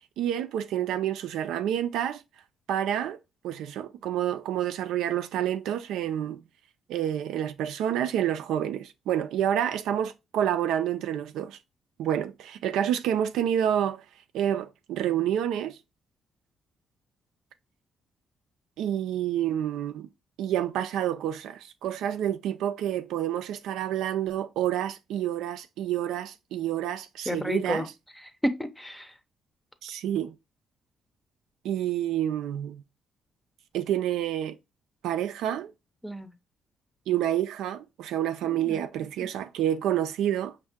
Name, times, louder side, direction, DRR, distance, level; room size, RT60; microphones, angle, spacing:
voice 1, 0.2-2.2 2.7-3.2 3.4-6.4 6.9-11.6 12.0-14.0 14.3-15.8 18.8-20.1 20.4-27.9 29.8-30.3 31.6-32.8 33.7-34.6 35.0-35.7 37.1-40.7, right 10 dB, 85° right, 0.4 m, -28 dB
voice 2, 27.3-27.9 28.4-29.1 36.0-36.3 38.4-38.8, equal, 5° left, 0.6 m, -31 dB
5.4 x 2.7 x 3.5 m
cardioid pair, 90°, 0 cm